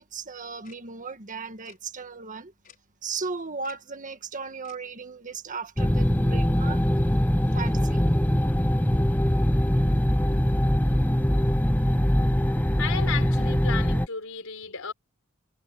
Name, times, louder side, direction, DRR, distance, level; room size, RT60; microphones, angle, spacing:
voice 1, 0.0-2.5 3.0-6.8 7.5-8.1, right 4 dB, 40° right, 1.7 m, -36 dB
Tick-tock, 0.6-0.8 1.6-1.8 2.6-2.8 3.6-3.8 4.6-4.8, left 7 dB, 45° left, 5.8 m, -53 dB
sound 1, 5.8-14.1, equal, 10° left, 1.0 m, -22 dB
voice 2, 12.8-14.9, left 6 dB, 80° left, 4.4 m, -33 dB
head